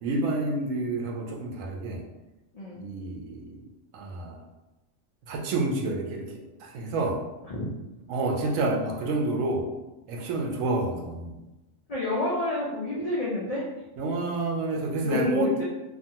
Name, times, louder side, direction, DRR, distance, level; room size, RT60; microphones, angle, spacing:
voice 1, 0.0-2.0 2.7-3.7 3.9-4.4 5.3-7.2 8.1-9.7 10.1-11.4 14.0-15.5, right 2 dB, 80° right, 1 dB, 0.9 m, -29 dB
voice 2, 11.9-13.6 15.0-15.6, left 2 dB, 65° left, -6 dB, 0.3 m, -29 dB
2.6 x 2.3 x 2.7 m, 1.0 s
omnidirectional pair, 1.3 m